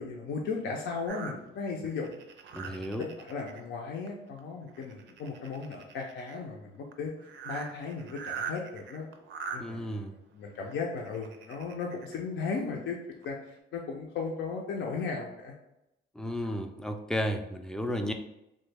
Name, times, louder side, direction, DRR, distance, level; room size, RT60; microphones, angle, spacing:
voice 1, 0.0-2.2 2.6-7.1 7.4-9.1 9.5-10.1 10.3-13.0 13.2-15.5, left 4 dB, 70° left, 0 dB, 0.5 m, -36 dB
sound 1, 1.1-3.6 4.1-4.4 4.7-6.4 6.9-7.0 7.2-9.6 10.6-12.2 12.7-12.8 13.2-13.3, right 6 dB, 70° right, 0.5 m, -42 dB
voice 2, 2.5-3.1 9.6-10.1 16.2-18.1, equal, 5° left, 5 dB, 0.3 m, -33 dB
3.1 x 2.1 x 3.3 m, 0.87 s
cardioid pair, 90°, 20 cm